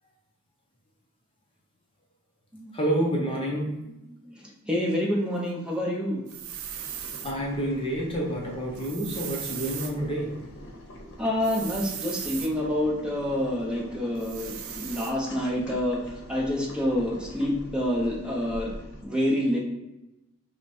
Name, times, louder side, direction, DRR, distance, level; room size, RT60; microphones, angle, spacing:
voice 1, 2.7-3.7 6.7-6.8 7.2-10.3, right 1 dB, 25° left, -2 dB, 0.7 m, -28 dB
voice 2, 4.1-6.2 11.2-18.7 19.0-19.6, left 1 dB, 5° right, -3 dB, 0.8 m, -28 dB
Boiling, 6.3-19.0, left 1 dB, 55° left, 0.9 m, -44 dB
sound 1, 6.3-7.3 8.7-9.9 11.4-12.5 14.2-15.1, right 9 dB, 70° right, 0.5 m, -37 dB
5.8 x 2.2 x 4.2 m, 0.93 s
head